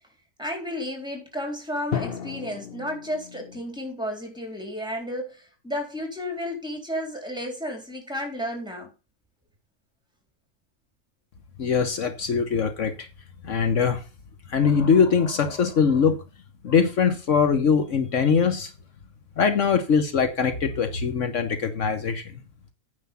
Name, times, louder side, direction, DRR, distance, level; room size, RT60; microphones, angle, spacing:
voice 1, 0.4-8.9, equal, 5° right, 3.7 m, -32 dB
Drum, 1.9-3.8, left 8 dB, 50° left, 1.1 m, -34 dB
voice 2, 11.6-13.1 13.4-14.0 14.5-16.2 16.6-18.7 19.4-22.2, left 6 dB, 70° left, 1.3 m, -22 dB
9.4 x 5.8 x 7.1 m
omnidirectional pair, 1.4 m